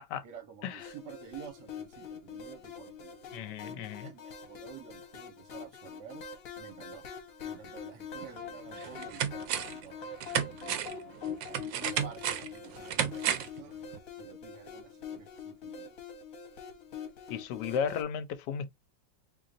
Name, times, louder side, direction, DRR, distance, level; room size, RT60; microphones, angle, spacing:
voice 1, 0.2-6.2 6.6-7.0 7.4-11.2 11.5-13.7 14.2-15.9, right 7 dB, 65° right, 1.6 m, -50 dB
sound 1, 0.8-18.0, left 6 dB, 55° left, 1.3 m, -44 dB
voice 2, 3.3-4.1 17.3-18.7, left 7 dB, 75° left, 1.2 m, -34 dB
sound 2, 8.2-8.3 8.8-9.9 10.2-13.6 13.9-14.0, right 9 dB, 85° right, 1.4 m, -33 dB
3.8 x 3.2 x 2.5 m
omnidirectional pair, 2.0 m